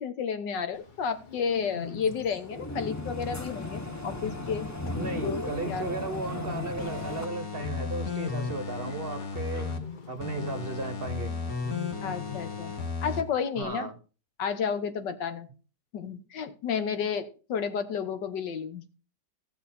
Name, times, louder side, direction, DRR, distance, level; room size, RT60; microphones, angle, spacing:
voice 1, 0.0-4.7 5.2-5.4 5.7-5.8 12.0-12.7 13.0-13.9 14.4-15.5 15.9-18.9, left 6 dB, 80° left, 1.8 m, -31 dB
Bird, 0.7-12.9, left 7 dB, 35° left, 0.9 m, -43 dB
sound 1, 2.2-7.3, left 1 dB, 20° left, 0.5 m, -36 dB
voice 2, 4.9-9.7 10.1-11.3 13.6-14.0, right 3 dB, 40° right, 1.0 m, -35 dB
sound 2, 6.8-9.8 10.2-13.2 13.6-13.7, left 4 dB, 55° left, 1.9 m, -34 dB
16.0 x 7.1 x 4.3 m
omnidirectional pair, 1.9 m